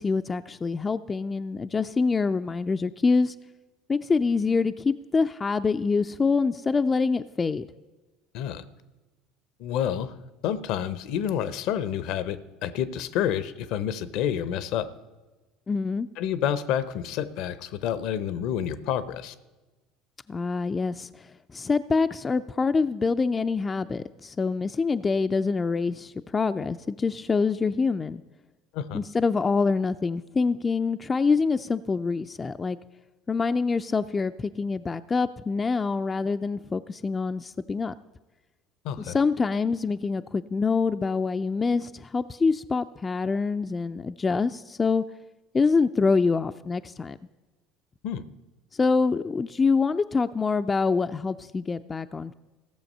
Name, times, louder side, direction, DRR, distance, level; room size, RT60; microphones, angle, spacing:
voice 1, 0.0-3.3 3.9-7.7 15.7-16.1 20.3-28.2 28.9-32.8 33.3-37.9 39.0-45.0 45.5-47.2 48.7-52.3, left 4 dB, 25° left, 10 dB, 0.4 m, -25 dB
voice 2, 9.6-10.2 10.4-14.9 16.2-19.3 28.7-29.0 38.8-39.2 48.0-48.2, left 9 dB, 65° left, 14 dB, 0.7 m, -29 dB
16.0 x 7.0 x 5.5 m, 1.2 s
hypercardioid pair, 70°, 0 cm